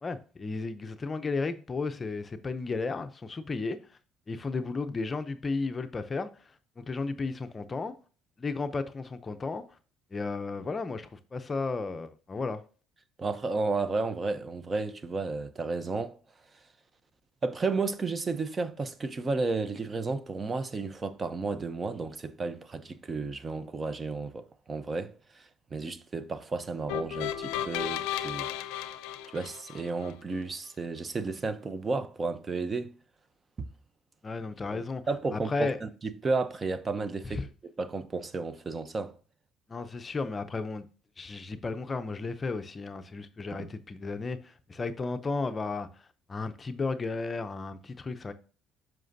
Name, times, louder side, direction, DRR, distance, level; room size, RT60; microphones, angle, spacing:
voice 1, 0.0-4.0 4.3-7.9 8.4-9.6 10.1-12.6 34.2-35.0 35.3-35.8 37.2-37.5 39.7-40.9 41.2-48.3, left 3 dB, 30° left, 0.6 m, -34 dB
voice 2, 13.2-16.2 16.5-16.6 17.4-28.9 29.3-32.9 33.6-33.7 34.7-34.8 35.1-37.4 37.8-39.1 43.6-43.7, right 3 dB, 30° right, 0.7 m, -33 dB
sound 1, 26.9-30.1, left 11 dB, 85° left, 0.5 m, -34 dB
7.4 x 5.9 x 2.6 m
supercardioid pair, 85°, 0 cm